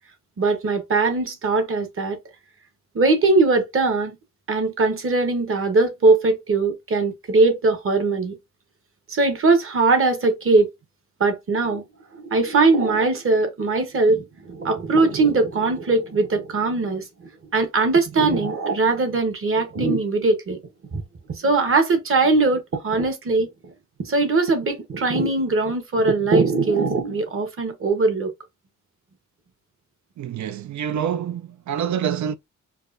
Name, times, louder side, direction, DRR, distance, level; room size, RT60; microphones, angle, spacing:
voice 1, 0.4-2.2 2.9-4.2 4.5-8.3 9.1-10.7 11.2-11.8 12.1-17.0 17.5-20.6 20.9-21.0 21.4-23.5 24.0-28.3, right 3 dB, 45° right, 1.1 m, -20 dB
voice 2, 30.2-32.3, right 9 dB, 65° right, 0.5 m, -26 dB
4.6 x 2.4 x 2.5 m
wide cardioid pair, 120°, 31 cm